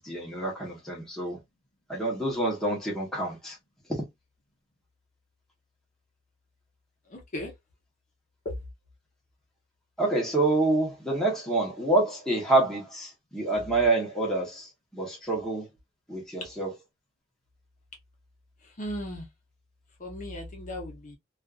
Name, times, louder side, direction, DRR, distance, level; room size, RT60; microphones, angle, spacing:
voice 1, 0.0-1.4 1.9-3.5 10.0-14.7 14.9-15.6 16.1-16.7, right 2 dB, ahead, 0.9 m, -27 dB
voice 2, 7.1-7.5 18.8-19.2 20.0-21.2, equal, 40° left, 0.8 m, -36 dB
2.5 x 2.4 x 2.3 m
head